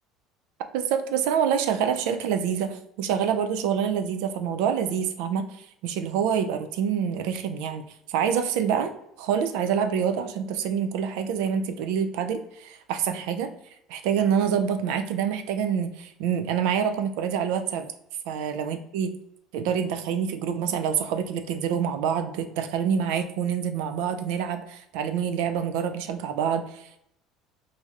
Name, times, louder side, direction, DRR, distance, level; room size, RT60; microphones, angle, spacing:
voice 1, 0.7-5.5 5.8-13.5 13.9-17.9 18.3-19.1 19.5-27.0, right 8 dB, 80° right, 8 dB, 0.3 m, -26 dB
3.2 x 2.7 x 2.4 m, 0.77 s
supercardioid pair, 100°, 0 cm